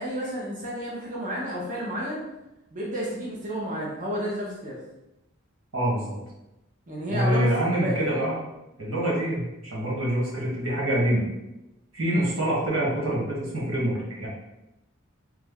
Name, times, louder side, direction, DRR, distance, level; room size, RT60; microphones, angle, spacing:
voice 1, 0.0-2.2 2.7-4.8 6.9-8.2 12.1-12.3, equal, 35° right, -5 dB, 0.7 m, -31 dB
voice 2, 5.7-6.2 7.1-8.4 8.8-11.2 11.9-14.3, right 1 dB, 85° right, -5 dB, 1.4 m, -25 dB
3.3 x 2.0 x 3.5 m, 0.94 s
head